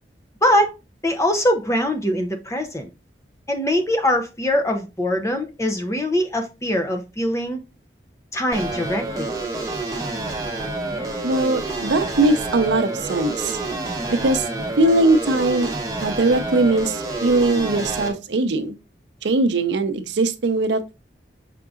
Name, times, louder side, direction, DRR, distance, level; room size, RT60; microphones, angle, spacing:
voice 1, 0.4-0.8 1.0-2.9 3.5-7.6 8.3-9.3, left 1 dB, 15° left, 0.5 m, -22 dB
sound 1, 8.5-18.1, right 2 dB, 20° right, 0.8 m, -28 dB
voice 2, 11.2-13.6 14.1-14.5 14.8-15.7 16.0-18.7 19.2-20.9, right 2 dB, 80° right, 0.6 m, -20 dB
5.8 x 3.7 x 2.4 m
head